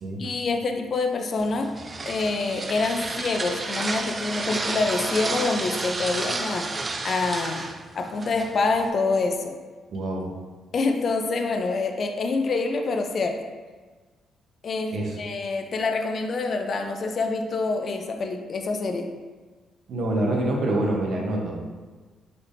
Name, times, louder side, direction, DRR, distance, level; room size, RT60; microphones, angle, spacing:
voice 1, 0.2-6.7 7.0-7.7 8.0-9.6 10.7-13.4 14.6-19.1, left 3 dB, 50° left, 5 dB, 0.4 m, -26 dB
sound 1, 1.4-8.9, right 3 dB, 30° right, 0.3 m, -31 dB
voice 2, 9.9-10.3 14.9-15.2 19.9-21.6, right 1 dB, 65° right, -1 dB, 0.8 m, -26 dB
4.2 x 3.3 x 2.5 m, 1.4 s
cardioid pair, 90°, 0 cm